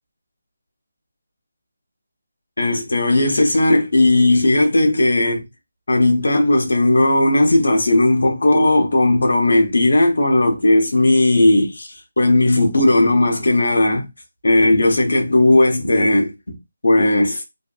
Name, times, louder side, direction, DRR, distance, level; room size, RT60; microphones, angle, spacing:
voice 1, 2.6-5.4 5.9-14.1 14.4-16.6 16.8-17.4, left 1 dB, 70° left, 0.8 m, -16 dB
2.6 x 2.4 x 2.3 m
figure-of-eight pair, 180°, 0 cm